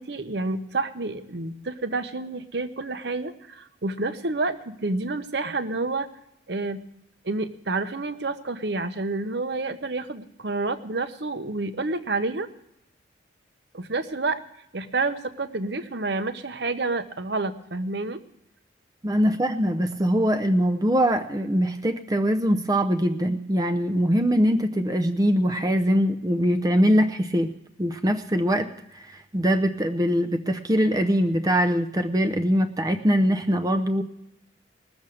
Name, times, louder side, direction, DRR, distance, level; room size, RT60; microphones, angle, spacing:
voice 1, 0.0-6.1 6.5-6.8 7.2-12.5 13.7-14.4 14.7-18.2, right 3 dB, 60° right, 10 dB, 0.9 m, -29 dB
voice 2, 19.0-27.5 27.8-28.7 28.9-34.0, equal, 20° right, 7 dB, 0.6 m, -22 dB
19.5 x 7.2 x 6.4 m, 0.81 s
head